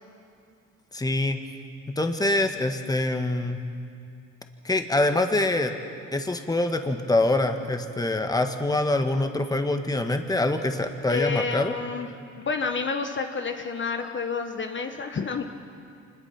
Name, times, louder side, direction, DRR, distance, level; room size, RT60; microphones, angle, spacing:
voice 1, 0.9-1.4 2.0-3.6 4.6-5.7 6.1-11.8, left 2 dB, 10° left, 6 dB, 1.5 m, -25 dB
voice 2, 11.1-12.1 12.4-15.5, left 5 dB, 40° left, 5 dB, 1.3 m, -29 dB
26.0 x 21.0 x 5.9 m, 2.5 s
cardioid pair, 90°, 30 cm